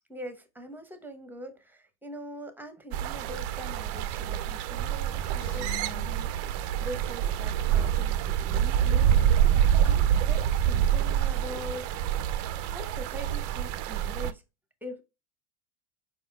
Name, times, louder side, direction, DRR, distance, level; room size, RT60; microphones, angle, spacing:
voice 1, 0.1-9.5 9.8-12.0 12.6-14.4 14.8-15.0, equal, 5° right, 0.7 m, -43 dB
sound 1, 2.9-14.3, right 10 dB, 35° right, 0.4 m, -26 dB
sound 2, 5.4-7.4 7.9-10.5 10.8-11.3, left 11 dB, 50° left, 0.8 m, -48 dB
5.0 x 4.3 x 2.3 m
hypercardioid pair, 90°, 45 cm